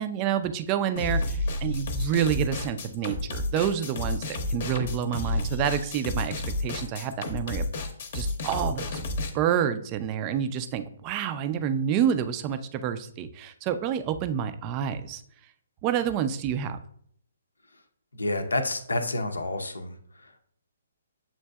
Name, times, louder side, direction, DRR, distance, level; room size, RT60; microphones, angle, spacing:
voice 1, 0.0-7.7 8.1-9.0 9.3-15.2 15.8-16.8, right 9 dB, 30° right, 9 dB, 0.4 m, -28 dB
sound 1, 1.0-9.3, left 2 dB, 50° left, 0.7 m, -30 dB
voice 2, 18.1-19.9, left 2 dB, 85° left, 7 dB, 0.5 m, -29 dB
7.3 x 2.6 x 2.2 m, 0.64 s
figure-of-eight pair, 135°, 0 cm